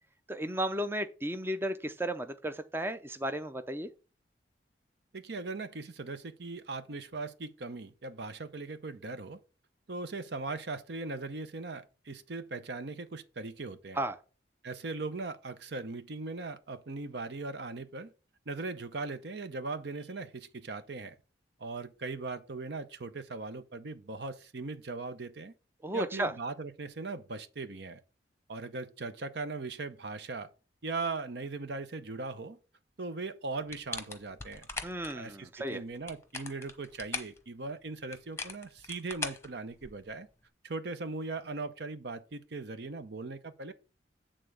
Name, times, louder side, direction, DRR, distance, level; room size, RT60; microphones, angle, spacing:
voice 1, 0.3-3.9 14.0-14.2 25.8-26.3 34.8-35.8, right 1 dB, 10° right, 0.5 m, -34 dB
voice 2, 5.1-9.4 9.9-14.0 14.6-18.1 18.5-21.2 21.6-25.5 25.9-28.0 28.5-30.5 30.8-32.6 33.0-34.7 35.2-40.3 40.6-43.7, right 3 dB, 60° right, 0.7 m, -39 dB
sound 1, 33.7-35.1 35.9-37.4 38.1-40.1, left 4 dB, 15° left, 1.0 m, -40 dB
9.0 x 3.7 x 6.3 m
head